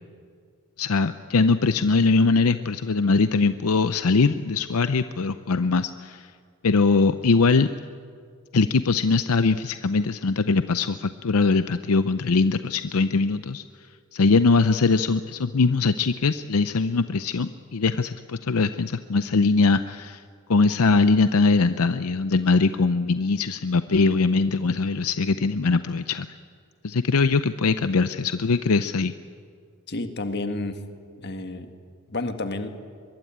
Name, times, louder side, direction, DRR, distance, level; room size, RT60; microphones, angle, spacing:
voice 1, 0.8-6.3 6.6-7.7 8.5-13.6 14.1-20.2 20.5-26.3 26.8-29.1, left 4 dB, 75° left, 11 dB, 0.6 m, -21 dB
voice 2, 29.9-30.8 31.2-31.7 32.1-32.7, left 2 dB, 50° left, 7 dB, 1.7 m, -30 dB
23.0 x 22.0 x 8.7 m, 2.1 s
head